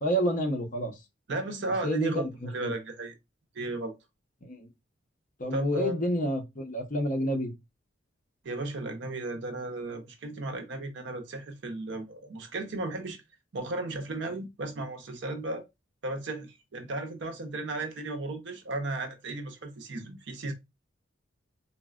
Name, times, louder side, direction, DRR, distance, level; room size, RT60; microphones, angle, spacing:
voice 1, 0.0-0.9 1.8-2.1 2.4-2.8 4.4-4.7 5.4-7.5, equal, 40° left, 0.7 m, -29 dB
voice 2, 1.3-3.1 3.5-3.9 5.5-6.0 8.4-13.2 13.5-15.7 16.0-20.5, right 2 dB, 60° right, 0.6 m, -35 dB
3.9 x 2.0 x 2.3 m
head